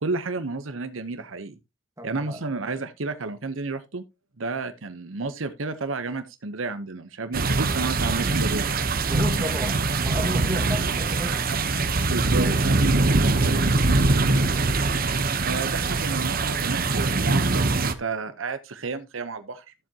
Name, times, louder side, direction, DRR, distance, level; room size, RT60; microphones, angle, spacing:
voice 1, 0.0-1.5 2.0-4.0 4.4-8.8 12.1-14.4 15.4-19.7, right 3 dB, 75° right, 0.9 m, -32 dB
voice 2, 2.0-2.4 9.1-11.5 14.5-14.7, equal, 15° right, 1.8 m, -33 dB
sound 1, 7.3-17.9, right 3 dB, 45° right, 0.9 m, -23 dB
13.5 x 7.5 x 2.9 m
head